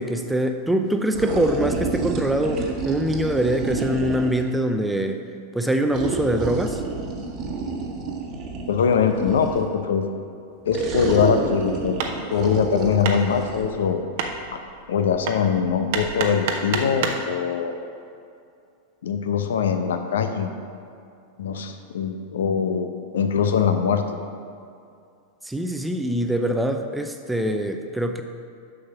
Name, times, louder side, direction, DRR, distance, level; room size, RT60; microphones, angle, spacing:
voice 1, 0.0-5.2 5.5-6.8 25.5-28.2, right 1 dB, 5° right, 6 dB, 0.6 m, -23 dB
sound 1, 1.1-4.5 5.9-9.7 10.7-13.6, right 4 dB, 35° right, 1.3 m, -29 dB
voice 2, 8.7-10.1 10.7-12.0 12.3-14.0 14.5-14.6 14.9-17.7 19.0-20.5 21.4-24.0, left 7 dB, 60° left, 7 dB, 0.7 m, -22 dB
Hammer, 12.0-17.3, right 5 dB, 50° right, 0.8 m, -31 dB
7.3 x 6.4 x 6.0 m, 2.4 s
figure-of-eight pair, 90°, 0 cm